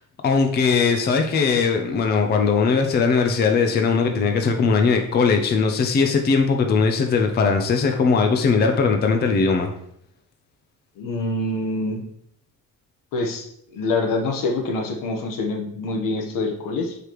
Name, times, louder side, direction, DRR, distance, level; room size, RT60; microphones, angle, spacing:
voice 1, 0.2-9.7, left 5 dB, 30° left, 4 dB, 0.6 m, -19 dB
voice 2, 11.0-12.0 13.1-17.0, left 2 dB, 70° left, 3 dB, 1.2 m, -25 dB
6.6 x 4.9 x 3.0 m, 0.73 s
cardioid pair, 135°, 33 cm